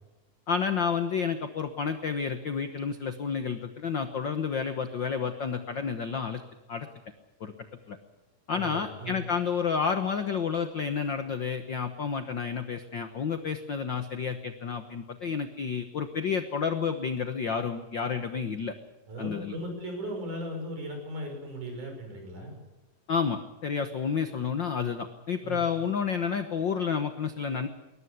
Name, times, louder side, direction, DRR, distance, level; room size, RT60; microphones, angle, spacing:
voice 1, 0.5-6.4 6.7-6.9 7.4-7.5 7.9-8.0 8.5-18.7 19.2-19.5 23.1-27.7, left 6 dB, 80° left, 8 dB, 1.0 m, -30 dB
voice 2, 8.5-9.2 19.1-22.6 25.4-25.7, equal, 65° right, 3 dB, 7.4 m, -37 dB
22.0 x 19.0 x 8.3 m, 1.0 s
omnidirectional pair, 3.9 m